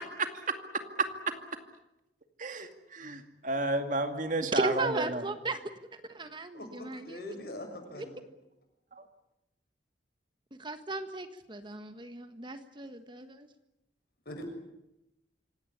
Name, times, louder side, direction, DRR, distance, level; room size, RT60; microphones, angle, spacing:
voice 1, 2.4-5.2, right 2 dB, 45° right, 7 dB, 2.3 m, -32 dB
voice 2, 4.5-5.6 5.9-7.3 8.0-8.1 10.6-13.5, right 2 dB, 25° right, 9 dB, 1.5 m, -36 dB
voice 3, 6.5-8.2 14.3-14.5, left 1 dB, 60° left, 4 dB, 7.1 m, -43 dB
26.0 x 18.0 x 10.0 m, 0.90 s
head